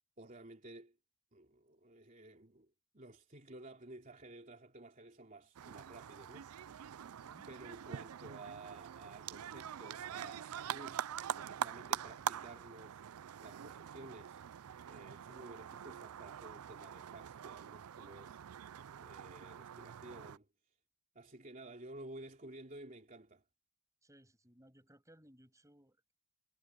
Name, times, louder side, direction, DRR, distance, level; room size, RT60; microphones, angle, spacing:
voice 1, 0.2-1.0 1.3-6.6 7.5-11.0 11.4-13.0 13.4-14.4 14.9-18.4 19.0-20.5 21.1-23.4, right 2 dB, 40° right, 3.2 m, -53 dB
sound 1, 5.5-20.4, right 9 dB, 85° right, 0.4 m, -44 dB
voice 2, 24.0-26.1, equal, 15° right, 6.7 m, -63 dB
head